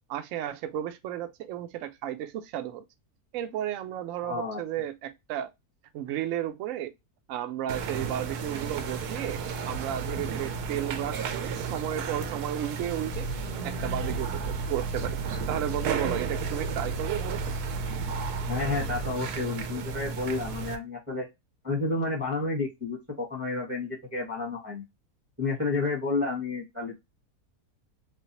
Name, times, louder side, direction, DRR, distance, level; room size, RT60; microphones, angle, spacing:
voice 1, 0.1-2.8 3.3-5.5 5.9-6.9 7.3-13.3 13.6-15.2 15.5-17.4, right 11 dB, 70° right, 0.8 m, -33 dB
voice 2, 4.2-4.6 18.5-21.3 21.6-24.8 25.4-26.9, left 3 dB, 10° right, 0.9 m, -30 dB
sound 1, 7.7-20.8, right 6 dB, 85° right, 1.1 m, -34 dB
sound 2, 13.1-19.3, right 2 dB, 60° left, 0.5 m, -35 dB
3.2 x 2.6 x 2.8 m
omnidirectional pair, 1.6 m